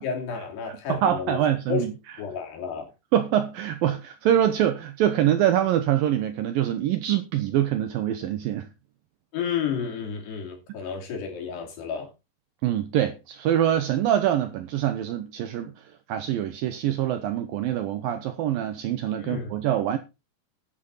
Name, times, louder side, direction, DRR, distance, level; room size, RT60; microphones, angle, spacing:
voice 1, 0.0-1.4 1.7-1.8 2.2-2.9 9.3-12.1 19.2-19.5, left 7 dB, 70° left, 5.0 m, -31 dB
voice 2, 0.7-1.9 3.1-8.7 12.6-15.7 16.1-20.0, right 11 dB, 75° right, 2.2 m, -24 dB
11.5 x 9.8 x 4.1 m
omnidirectional pair, 5.0 m